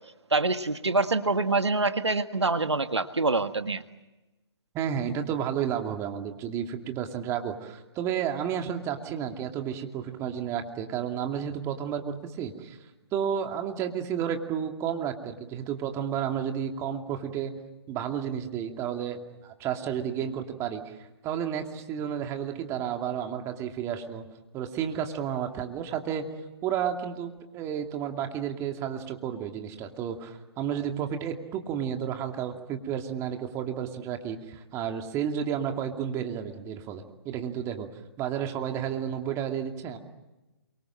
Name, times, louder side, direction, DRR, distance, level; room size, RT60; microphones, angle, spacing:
voice 1, 0.3-3.8, right 3 dB, 85° right, 10 dB, 1.6 m, -25 dB
voice 2, 4.7-12.8 13.1-17.5 17.9-24.3 24.5-26.3 26.6-37.9 38.2-40.0, right 8 dB, 20° right, 5 dB, 2.5 m, -32 dB
28.0 x 24.0 x 7.6 m, 1.1 s
figure-of-eight pair, 135°, 14 cm